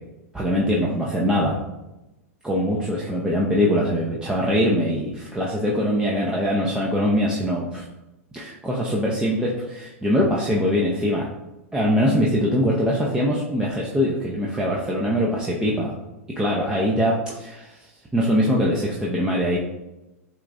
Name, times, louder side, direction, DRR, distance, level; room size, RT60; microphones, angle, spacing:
voice 1, 0.3-1.6 2.4-7.8 8.3-11.3 11.7-15.9 16.4-19.6, equal, 10° right, -4 dB, 0.6 m, -22 dB
7.2 x 2.5 x 2.6 m, 0.97 s
hypercardioid pair, 110°, 8 cm